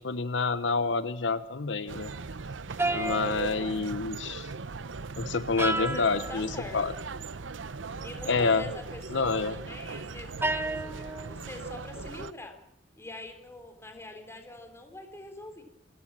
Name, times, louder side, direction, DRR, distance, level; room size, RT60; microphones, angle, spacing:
voice 1, 0.0-2.1 2.9-4.5 5.2-6.9 8.3-8.6 9.1-9.5, left 4 dB, 70° left, 13 dB, 1.0 m, -28 dB
sound 1, 1.9-12.3, right 4 dB, 75° right, 0.8 m, -39 dB
sound 2, 2.8-4.0 5.6-6.4 10.4-11.4, right 2 dB, 15° right, 1.2 m, -32 dB
voice 2, 2.9-3.2 5.6-6.8 8.0-12.6 13.0-15.6, left 1 dB, 15° left, 5 dB, 3.6 m, -43 dB
27.5 x 15.0 x 7.5 m, 0.81 s
head